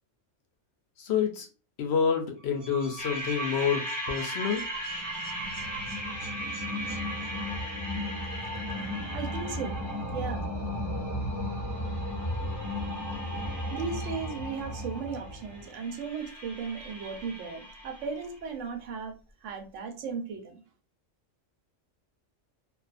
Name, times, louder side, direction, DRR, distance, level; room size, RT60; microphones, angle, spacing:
voice 1, 1.0-1.5 1.8-4.6, left 7 dB, 65° left, 4 dB, 0.8 m, -28 dB
sound 1, 2.4-7.8, right 5 dB, 45° right, 0.9 m, -43 dB
sound 2, 3.0-18.3, left 1 dB, 15° right, 1.1 m, -35 dB
voice 2, 9.1-9.8 10.1-10.5 13.7-19.1 19.4-20.6, right 5 dB, 80° right, 5 dB, 1.0 m, -36 dB
2.5 x 2.3 x 2.4 m, 0.34 s
omnidirectional pair, 1.3 m